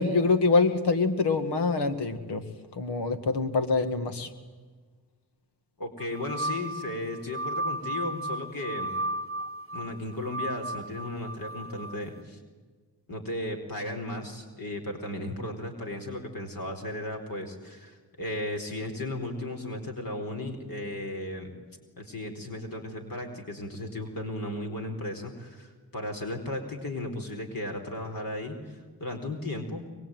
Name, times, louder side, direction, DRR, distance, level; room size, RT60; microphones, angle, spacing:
voice 1, 0.0-2.4 2.7-4.3, left 4 dB, 85° left, 8 dB, 2.2 m, -25 dB
voice 2, 5.8-8.9 9.7-12.4 13.1-21.5 22.0-29.9, left 1 dB, 55° left, 3 dB, 4.4 m, -35 dB
sound 1, 6.0-12.0, right 1 dB, 35° right, 0.7 m, -34 dB
24.0 x 23.0 x 9.2 m, 1.4 s
cardioid pair, 60°, 39 cm